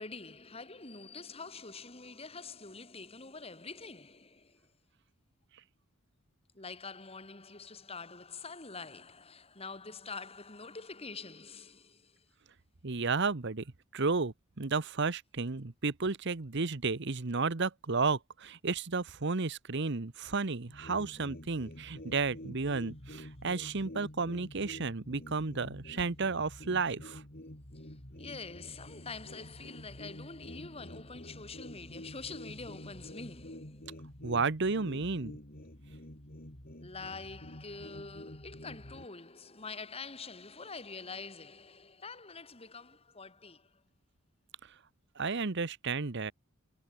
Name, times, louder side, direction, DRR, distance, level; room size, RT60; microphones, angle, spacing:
voice 1, 0.0-4.7 6.5-12.3 27.7-34.1 36.8-43.8, left 4 dB, 30° left, 3.0 m, -46 dB
voice 2, 12.8-13.6 13.9-27.2 34.2-35.3 45.2-46.3, right 4 dB, 55° right, 1.0 m, -32 dB
sound 1, 20.7-39.1, left 1 dB, 45° left, 4.0 m, -48 dB
head